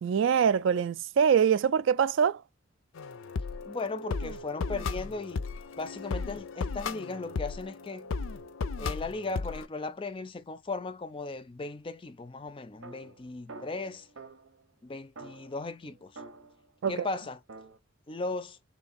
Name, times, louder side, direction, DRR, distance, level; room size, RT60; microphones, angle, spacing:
voice 1, 0.0-2.4 16.8-17.1, right 7 dB, 65° right, 0.3 m, -24 dB
sound 1, 3.0-9.7, left 4 dB, 80° left, 0.5 m, -35 dB
voice 2, 3.6-5.4 5.8-8.1 8.8-14.1 14.8-16.2 16.9-17.4 18.1-18.6, left 3 dB, 25° left, 0.4 m, -37 dB
sound 2, 12.8-14.6 15.2-17.8, right 3 dB, 85° right, 0.9 m, -48 dB
3.4 x 3.1 x 4.1 m
head